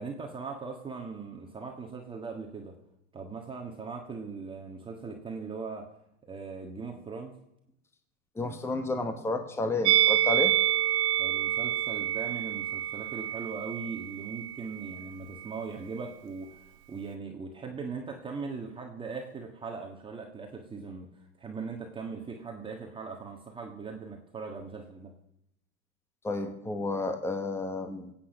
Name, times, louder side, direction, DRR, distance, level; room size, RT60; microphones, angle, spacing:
voice 1, 0.0-2.7 3.1-5.9 6.3-7.3 11.2-16.6 16.9-25.1, right 4 dB, 15° right, 2 dB, 1.5 m, -39 dB
voice 2, 8.3-10.5 26.2-28.1, left 2 dB, 5° left, 6 dB, 1.2 m, -31 dB
Musical instrument, 9.8-15.1 15.3-15.6, right 12 dB, 60° right, 1.1 m, -28 dB
22.5 x 8.8 x 5.3 m, 0.83 s
supercardioid pair, 135°, 38 cm